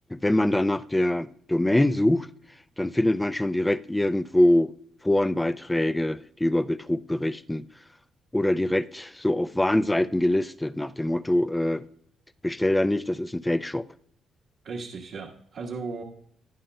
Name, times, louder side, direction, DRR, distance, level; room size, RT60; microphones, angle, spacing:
voice 1, 0.1-2.3 2.8-4.7 5.0-7.6 8.3-11.8 12.4-13.8, left 1 dB, 10° left, 0.4 m, -24 dB
voice 2, 14.6-16.0, right 4 dB, 70° right, 1.3 m, -36 dB
16.5 x 10.0 x 2.2 m
cardioid pair, 80°, 0 cm